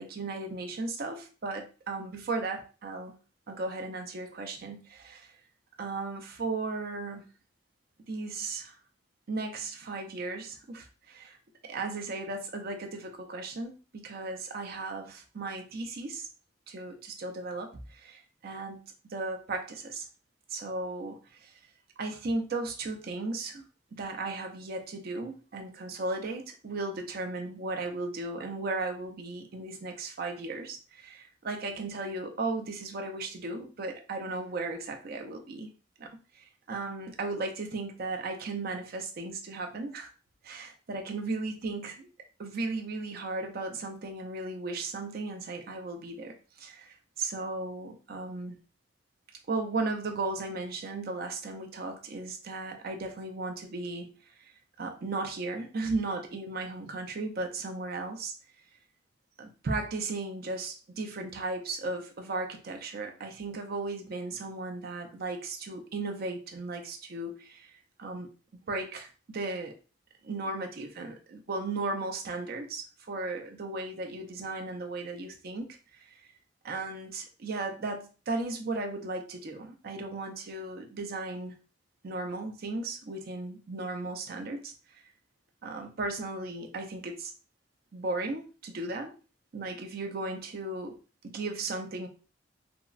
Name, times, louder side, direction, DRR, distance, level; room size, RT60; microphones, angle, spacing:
voice 1, 0.0-3.2 3.5-5.3 5.8-7.2 8.1-8.7 9.3-11.4 11.7-16.3 16.7-18.8 19.0-20.0 20.5-21.5 22.0-23.7 23.9-35.7 36.0-36.1 36.3-40.1 40.4-42.1 42.4-48.6 49.5-54.1 54.4-54.5 54.8-58.3 59.4-67.7 68.0-68.3 68.7-69.7 70.2-75.7 75.9-76.2 76.6-81.5 82.0-85.0 85.6-87.3 87.9-89.1 89.5-91.0 91.2-92.1, right 3 dB, 50° right, 4 dB, 0.5 m, -36 dB
3.5 x 2.0 x 2.4 m, 0.34 s
head